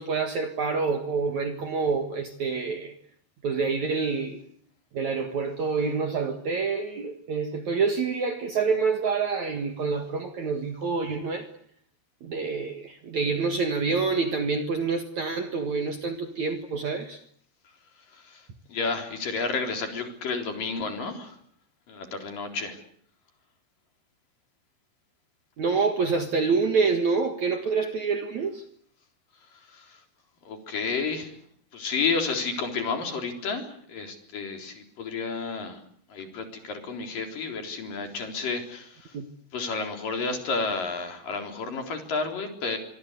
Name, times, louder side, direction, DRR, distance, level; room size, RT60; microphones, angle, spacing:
voice 1, 0.0-2.9 3.4-4.4 4.9-11.5 12.2-17.2 25.6-28.6 39.1-39.3, right 4 dB, 55° right, 2.4 m, -27 dB
voice 2, 18.7-21.4 21.9-22.8 29.7-30.0 30.5-31.3 31.7-35.8 36.1-39.2 39.5-42.8, left 4 dB, 50° left, 5.3 m, -31 dB
25.5 x 24.5 x 8.1 m
omnidirectional pair, 5.0 m